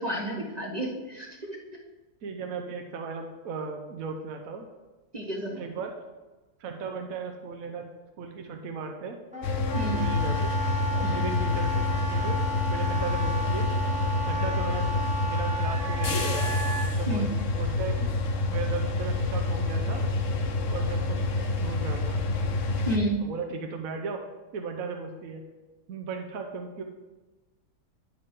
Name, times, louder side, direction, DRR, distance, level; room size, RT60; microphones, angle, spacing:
voice 1, 0.0-1.6 5.1-5.6 9.7-10.0 11.0-11.2 17.1-17.3 22.9-23.3, right 1 dB, 30° right, -2 dB, 1.0 m, -31 dB
voice 2, 2.2-4.7 5.6-6.0 6.6-7.9 8.2-9.2 9.9-10.5 10.9-13.7 14.3-14.9 15.3-16.5 17.0-18.1 18.5-20.0 20.7-21.2 21.6-22.2 23.2-24.2 24.5-25.5 25.9-26.8, right 5 dB, 70° right, 4 dB, 1.2 m, -36 dB
Wind instrument woodwind instrument, 9.3-16.9, right 1 dB, 5° right, 1.0 m, -33 dB
sound 1, 9.4-23.0, left 2 dB, 60° left, 1.0 m, -27 dB
9.5 x 6.5 x 3.7 m, 1.2 s
omnidirectional pair, 1.6 m